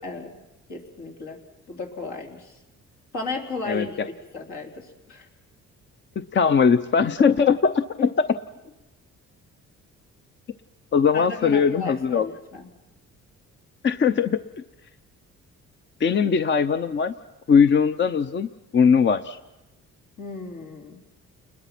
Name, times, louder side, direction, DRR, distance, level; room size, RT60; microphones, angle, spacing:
voice 1, 0.0-0.3 0.7-1.4 1.7-2.6 3.1-5.3 8.0-8.1 11.1-12.7 20.2-21.0, left 3 dB, 70° left, 1 dB, 3.8 m, -34 dB
voice 2, 3.7-4.1 6.3-8.1 10.9-12.3 13.8-14.4 16.0-17.1 17.5-19.4, left 6 dB, 40° left, 11 dB, 0.7 m, -20 dB
29.5 x 21.0 x 6.0 m, 1.0 s
cardioid pair, 90°, 30 cm